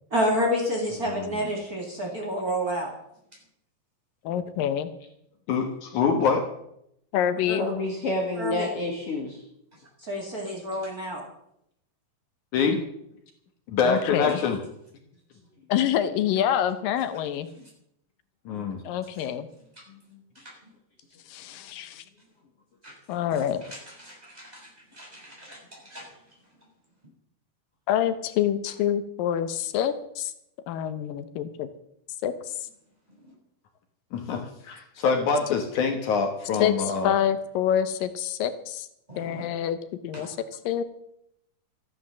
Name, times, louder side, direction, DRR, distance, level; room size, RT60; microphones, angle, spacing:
voice 1, 0.1-2.9 7.5-7.6 8.3-8.7 10.0-11.2, equal, 30° right, 0 dB, 2.7 m, -28 dB
voice 2, 1.1-1.5 5.5-6.4 12.5-12.8 13.7-14.6 18.5-18.8 34.1-37.1, left 5 dB, 65° left, 5 dB, 2.6 m, -25 dB
voice 3, 4.2-4.9 7.1-7.7 13.8-14.4 15.7-17.5 18.8-19.5 21.3-22.0 23.1-23.6 27.9-30.3 30.7-31.7 32.2-32.6 36.6-38.9 39.2-39.8 40.0-40.8, left 10 dB, 85° left, 12 dB, 2.6 m, -26 dB
voice 4, 7.6-9.4 19.9-20.2, left 2 dB, 45° left, 1 dB, 2.6 m, -29 dB
voice 5, 24.0-24.7 24.9-25.6 25.8-26.0 39.1-39.4 40.1-40.3, equal, 10° right, -3 dB, 6.4 m, -44 dB
14.0 x 9.9 x 7.4 m, 0.76 s
omnidirectional pair, 3.9 m